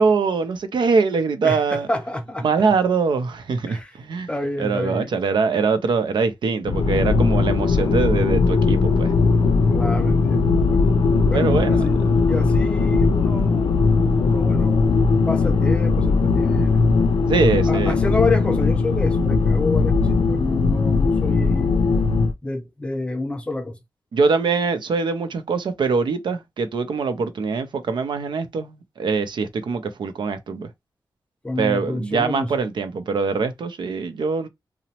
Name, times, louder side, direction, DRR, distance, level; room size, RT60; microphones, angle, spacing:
voice 1, 0.0-1.9 2.4-4.3 4.6-9.1 11.3-12.1 17.3-18.0 24.1-30.7 31.6-34.5, right 4 dB, 85° right, 0.5 m, -23 dB
voice 2, 1.4-2.4 3.7-3.9 4.3-5.1 9.7-10.8 11.3-12.0 12.3-13.9 14.2-15.0 15.3-16.9 17.7-21.7 22.4-23.8 31.4-32.5, left 2 dB, 15° left, 0.6 m, -28 dB
sound 1, 6.7-22.3, left 4 dB, 85° left, 0.4 m, -19 dB
2.9 x 2.0 x 2.8 m
wide cardioid pair, 85°, 8 cm